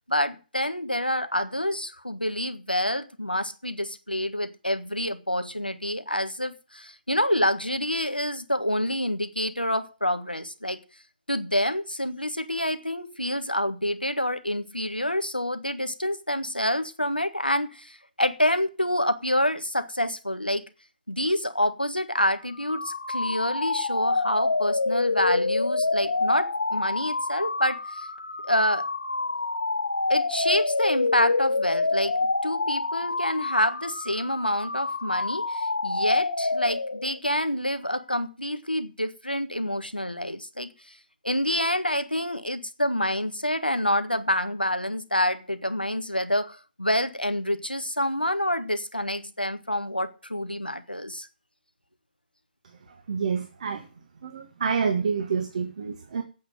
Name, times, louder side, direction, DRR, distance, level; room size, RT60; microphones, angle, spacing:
voice 1, 0.1-10.8 11.3-20.7 21.1-28.1 28.4-28.9 30.1-41.0 41.2-51.3, left 1 dB, 90° left, 1.6 m, -27 dB
sound 1, 22.5-37.2, left 3 dB, 70° left, 1.6 m, -27 dB
voice 2, 52.9-53.9 54.2-56.2, right 6 dB, 45° right, 1.8 m, -28 dB
8.5 x 8.3 x 9.2 m
figure-of-eight pair, 140°, 5 cm